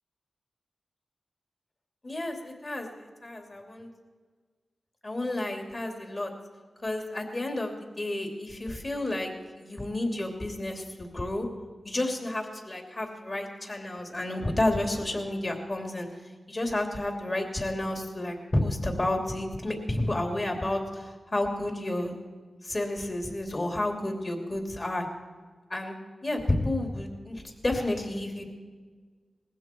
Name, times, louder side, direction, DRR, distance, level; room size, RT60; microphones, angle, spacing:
voice 1, 2.0-3.9 5.0-6.3 6.8-9.3 9.6-11.5 11.8-16.1 16.5-22.1 22.6-25.1 25.7-26.0 26.2-28.4, left 1 dB, 35° left, 3 dB, 3.0 m, -31 dB
20.0 x 15.5 x 4.6 m, 1.5 s
cardioid pair, 65°, 0 cm